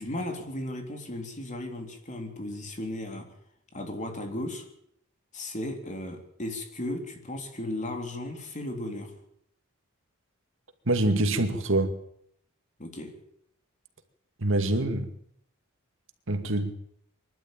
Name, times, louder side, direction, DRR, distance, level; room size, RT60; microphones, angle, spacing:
voice 1, 0.0-3.3 3.7-4.6 5.3-9.1 12.8-13.2, left 1 dB, 35° left, 3.6 m, -35 dB
voice 2, 10.9-12.0 14.4-15.1 16.3-16.7, right 2 dB, 65° right, 2.2 m, -25 dB
24.0 x 12.0 x 9.0 m
head